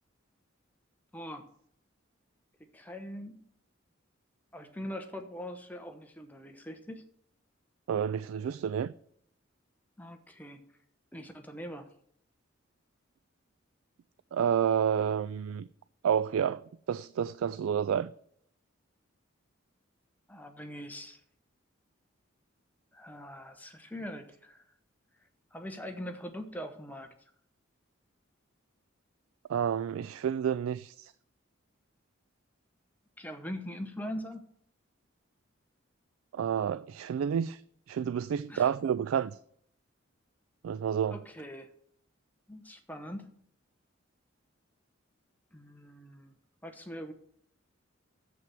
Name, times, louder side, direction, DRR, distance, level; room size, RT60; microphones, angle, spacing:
voice 1, 1.1-1.5 2.7-3.4 4.5-7.0 10.0-10.6 11.1-11.9 20.3-21.2 22.9-24.6 25.5-27.1 33.2-34.4 38.5-38.7 41.1-41.7 42.5-43.3 45.5-46.3 46.6-47.1, equal, 10° left, 0.9 m, -42 dB
voice 2, 7.9-8.9 14.3-15.7 16.0-18.1 29.5-31.1 36.3-37.6 37.9-39.4 40.6-41.2, right 8 dB, 85° right, 0.3 m, -29 dB
7.5 x 5.9 x 7.6 m
head